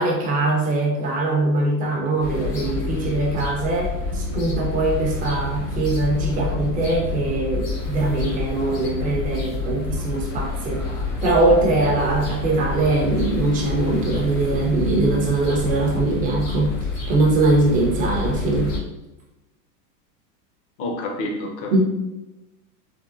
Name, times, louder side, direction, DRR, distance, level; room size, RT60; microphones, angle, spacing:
voice 1, 0.0-10.9 11.2-16.7 17.1-18.7 21.7-21.8, right 2 dB, 20° right, -1 dB, 0.5 m, -22 dB
sound 1, 2.2-18.8, left 2 dB, 85° left, 1.0 m, -28 dB
voice 2, 20.8-21.8, left 1 dB, 50° left, 1 dB, 0.7 m, -28 dB
3.5 x 2.1 x 2.5 m, 0.99 s
supercardioid pair, 125°, 48 cm